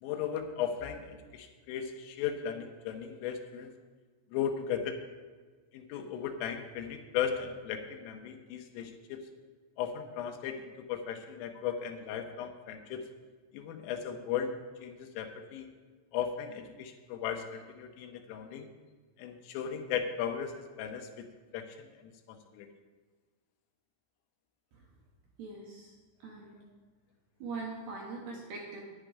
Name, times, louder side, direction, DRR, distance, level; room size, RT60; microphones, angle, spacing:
voice 1, 0.0-3.7 4.3-5.0 5.7-9.3 9.8-13.1 13.5-14.5 14.8-15.7 16.1-18.7 19.2-21.2 21.5-22.7, left 8 dB, 85° left, 6 dB, 3.4 m, -36 dB
voice 2, 25.4-25.9 26.2-26.5 27.4-28.8, right 3 dB, 70° right, -1 dB, 2.5 m, -41 dB
10.5 x 10.0 x 5.0 m, 1.4 s
omnidirectional pair, 6.0 m